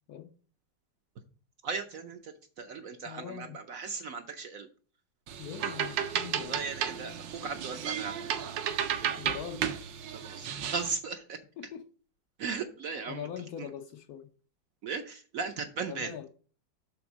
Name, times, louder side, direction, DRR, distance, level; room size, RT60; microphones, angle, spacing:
voice 1, 1.6-2.3 2.6-4.7 6.4-7.1 7.4-8.1 8.4-8.5 9.1-9.2 10.1-11.4 12.4-13.3 13.6-13.7 14.8-16.1, right 5 dB, 60° right, 1.0 m, -37 dB
voice 2, 3.0-3.6 5.4-6.6 9.2-9.6 11.6-11.8 13.1-14.3 15.9-16.3, left 9 dB, 65° left, 1.1 m, -42 dB
sound 1, 5.3-11.0, right 9 dB, 75° right, 1.4 m, -33 dB
7.1 x 3.8 x 6.0 m
omnidirectional pair, 2.0 m